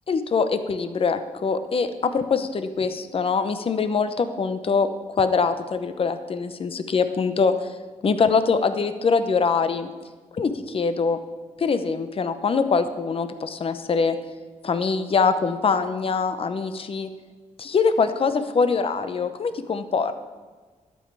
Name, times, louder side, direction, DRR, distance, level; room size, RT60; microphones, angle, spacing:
voice 1, 0.1-4.9 5.2-7.5 8.0-9.9 10.3-11.2 11.6-14.2 14.6-17.1 17.6-20.1, left 5 dB, 45° left, 10 dB, 0.8 m, -23 dB
12.0 x 5.5 x 8.2 m, 1.4 s
wide cardioid pair, 115°, 13 cm